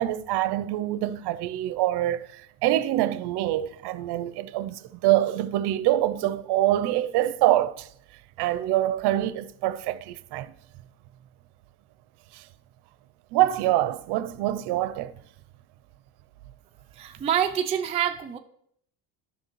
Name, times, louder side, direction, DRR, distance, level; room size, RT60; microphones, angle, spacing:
voice 1, 0.0-7.9 8.4-10.5 12.3-12.4 13.3-15.1, right 14 dB, 55° right, 0.6 m, -25 dB
voice 2, 17.0-18.4, right 9 dB, 15° right, 0.3 m, -26 dB
10.5 x 5.9 x 3.1 m
supercardioid pair, 85°, 49 cm